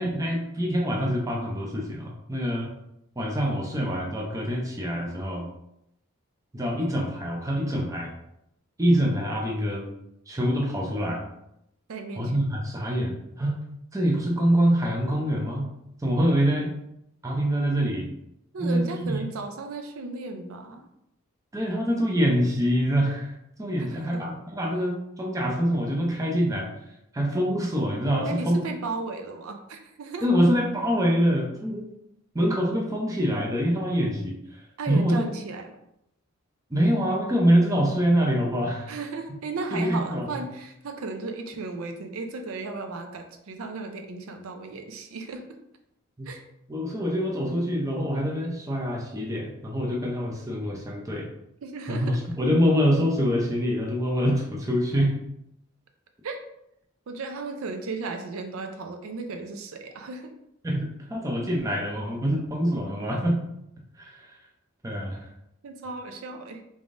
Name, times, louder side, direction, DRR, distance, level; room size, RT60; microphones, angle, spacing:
voice 1, 0.0-2.7 3.2-5.5 6.5-8.1 8.8-9.8 10.3-11.2 12.2-13.6 13.9-15.7 16.0-16.7 17.2-18.1 18.6-19.2 21.5-26.7 27.1-28.6 30.2-31.8 32.3-35.3 36.7-38.9 39.7-40.4 46.2-46.3 46.7-51.3 51.9-55.1 60.6-63.4 64.0-64.3 64.8-65.3, equal, 15° right, -1 dB, 0.5 m, -25 dB
voice 2, 11.9-12.3 18.5-20.9 23.8-24.2 28.2-30.3 34.8-35.8 38.9-45.4 46.3-46.4 51.6-52.2 55.0-55.1 56.2-56.4 57.1-60.3 65.6-66.6, right 3 dB, 75° right, 5 dB, 0.5 m, -35 dB
3.5 x 3.5 x 2.5 m, 0.79 s
head